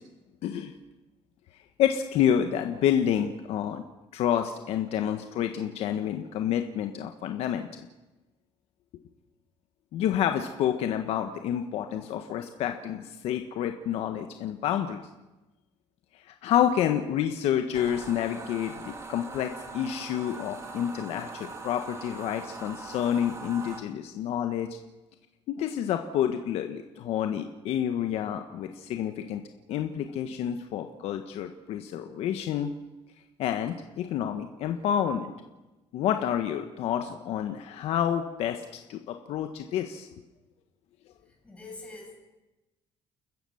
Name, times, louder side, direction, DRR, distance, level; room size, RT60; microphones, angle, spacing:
voice 1, 0.4-0.7 1.8-3.8 4.1-7.7 9.9-15.0 16.3-24.7 25.5-29.4 29.7-32.7 33.4-35.3 35.9-38.6 38.9-40.1, left 10 dB, 70° left, 6 dB, 1.5 m, -29 dB
sound 1, 17.7-23.8, right 3 dB, 25° right, 2.6 m, -41 dB
voice 2, 41.4-42.1, left 2 dB, 10° left, -1 dB, 7.3 m, -43 dB
30.0 x 14.5 x 7.2 m, 1.1 s
cardioid pair, 160°, 11 cm